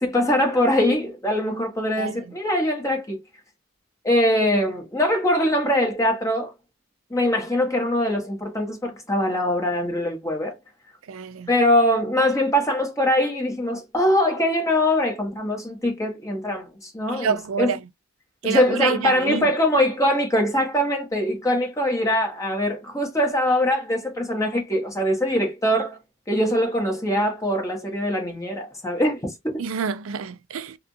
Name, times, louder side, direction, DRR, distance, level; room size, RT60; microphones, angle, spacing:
voice 1, 0.0-3.2 4.0-6.5 7.1-10.5 11.5-17.7 18.4-26.0 26.3-29.6, left 1 dB, 15° left, 1.3 m, -22 dB
voice 2, 11.1-11.5 17.1-17.8 18.4-19.4 29.6-30.8, right 6 dB, 85° right, 0.4 m, -27 dB
3.5 x 2.4 x 2.6 m
head